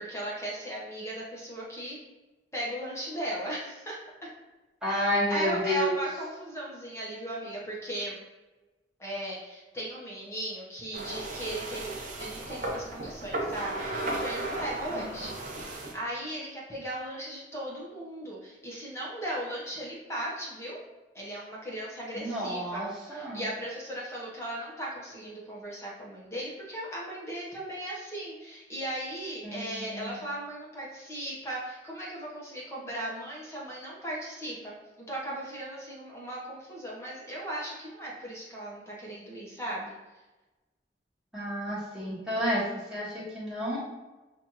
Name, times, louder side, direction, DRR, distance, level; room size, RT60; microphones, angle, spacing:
voice 1, 0.0-2.0 2.5-4.3 4.9-8.2 9.0-15.3 15.6-20.8 21.1-40.0, right 1 dB, 15° left, -5 dB, 0.9 m, -37 dB
voice 2, 4.8-5.9 14.9-15.2 22.1-23.4 29.4-30.2 41.3-43.8, equal, 5° right, -9 dB, 1.5 m, -31 dB
sound 1, 10.9-15.9, right 2 dB, 45° right, 0.7 m, -35 dB
6.1 x 2.5 x 2.9 m, 1.1 s
head